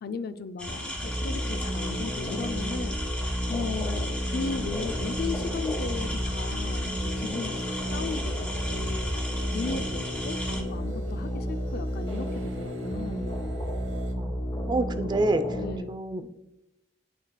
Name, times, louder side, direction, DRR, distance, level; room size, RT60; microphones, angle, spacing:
voice 1, 0.0-3.0 3.5-9.1 9.5-13.4 15.0-15.1 15.5-16.0, left 4 dB, 55° left, 11 dB, 0.4 m, -36 dB
sound 1, 0.6-10.6, equal, 10° left, 1.3 m, -36 dB
sound 2, 1.0-15.8, equal, 25° left, 1.3 m, -32 dB
sound 3, 5.7-14.1, right 1 dB, 80° right, 0.9 m, -44 dB
voice 2, 14.2-15.4 15.9-16.3, right 2 dB, 25° right, 9 dB, 0.4 m, -28 dB
11.5 x 4.1 x 2.2 m, 0.90 s
head